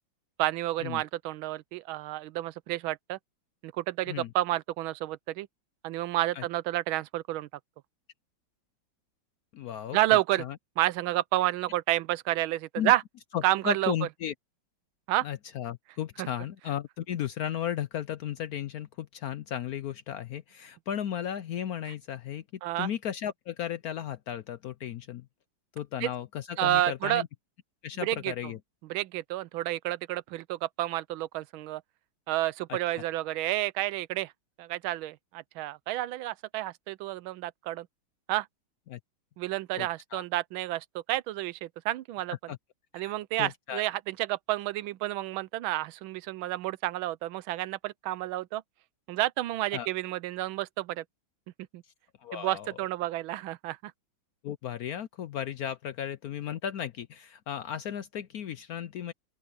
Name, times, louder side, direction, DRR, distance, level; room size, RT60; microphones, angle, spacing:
voice 1, 0.4-3.2 3.6-5.5 5.8-7.5 9.9-10.4 10.8-13.0 13.4-13.9 15.1-15.3 16.2-16.3 22.6-22.9 26.0-26.1 26.6-27.2 28.0-28.3 28.9-31.8 32.3-34.3 34.6-37.9 38.3-38.5 39.4-42.5 42.9-48.6 49.1-51.0 51.7-51.8 52.3-53.9, right 16 dB, 85° right, 1.4 m, -30 dB
voice 2, 9.5-10.0 10.4-10.6 12.8-12.9 13.3-14.3 15.2-22.4 22.8-25.3 25.8-27.3 27.8-28.6 32.7-32.8 38.9-39.0 39.8-40.2 42.5-42.6 42.9-43.1 43.4-43.8 49.7-49.9 52.2-52.8 54.4-59.1, left 10 dB, 75° left, 0.8 m, -35 dB
open air
omnidirectional pair, 2.2 m